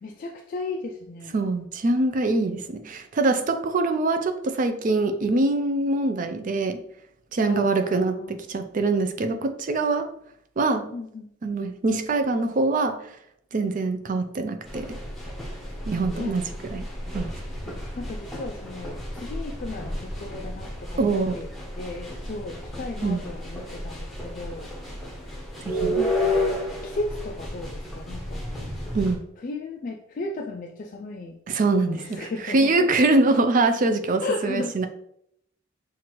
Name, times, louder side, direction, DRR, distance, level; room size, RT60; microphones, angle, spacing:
voice 1, 0.0-1.4 7.4-8.4 10.9-11.2 16.2-16.3 17.7-21.5 21.8-24.7 26.0-26.5 26.8-28.7 29.4-31.4 31.7-32.7 34.2-34.8, left 2 dB, 40° left, 0.3 m, -35 dB
voice 2, 1.3-6.8 7.3-10.1 10.6-10.9 11.4-13.0 13.5-15.0 15.9-16.8 17.1-17.4 21.0-21.4 23.0-23.2 25.6-26.0 28.9-29.3 31.5-34.9, right 3 dB, 40° right, 0.4 m, -24 dB
sound 1, 14.6-29.2, left 1 dB, ahead, 0.8 m, -32 dB
5.9 x 2.5 x 3.0 m
head